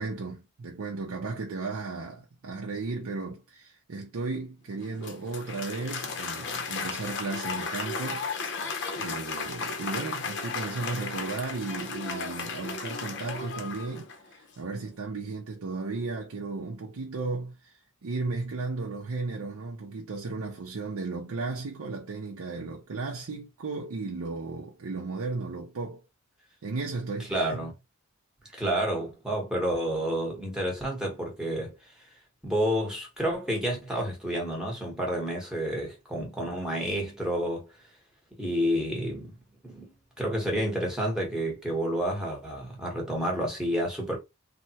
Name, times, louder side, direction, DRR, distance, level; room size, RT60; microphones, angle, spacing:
voice 1, 0.0-8.3 8.7-26.0 26.6-27.7 28.4-28.6, right 3 dB, 75° right, 0.6 m, -35 dB
Applause, 4.8-14.4, left 4 dB, 50° left, 0.6 m, -35 dB
voice 2, 27.3-27.7 28.6-31.9 32.4-37.7 38.3-39.4 39.6-44.2, equal, 5° right, 0.9 m, -30 dB
3.3 x 2.1 x 2.7 m
head